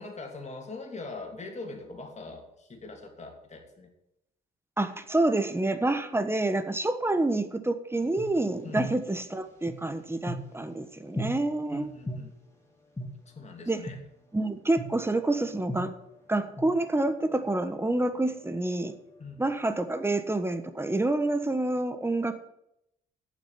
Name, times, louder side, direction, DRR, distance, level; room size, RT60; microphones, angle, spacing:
voice 1, 0.0-3.9 8.6-8.9 11.7-12.3 13.2-14.0 19.2-19.4, left 3 dB, 35° left, 3 dB, 2.9 m, -42 dB
voice 2, 4.8-11.9 13.7-13.8 14.3-15.9 16.3-18.9 19.4-22.3, right 2 dB, 10° right, 9 dB, 1.2 m, -28 dB
sound 1, 8.0-10.7 11.2-11.3 12.1-12.2 13.0-13.1 13.9-14.0 14.8-14.9 15.7-17.2 17.5-19.2, left 1 dB, 15° left, 3.2 m, -38 dB
9.1 x 7.3 x 9.0 m, 0.81 s
cardioid pair, 90°, 20 cm